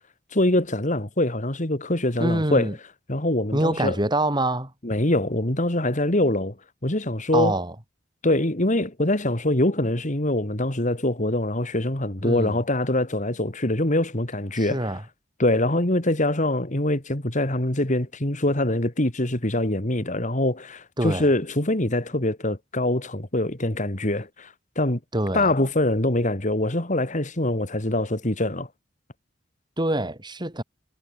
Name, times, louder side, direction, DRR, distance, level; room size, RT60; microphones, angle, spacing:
voice 1, 0.3-2.7 3.1-4.0 4.8-6.6 6.8-7.6 8.2-14.9 15.4-25.0 25.3-28.7, left 1 dB, 40° left, 3.1 m, -24 dB
voice 2, 2.2-2.7 3.5-4.7 7.3-7.7 12.2-12.6 14.5-15.0 21.0-21.3 25.1-25.5 29.8-30.6, right 1 dB, 25° right, 8.0 m, -25 dB
head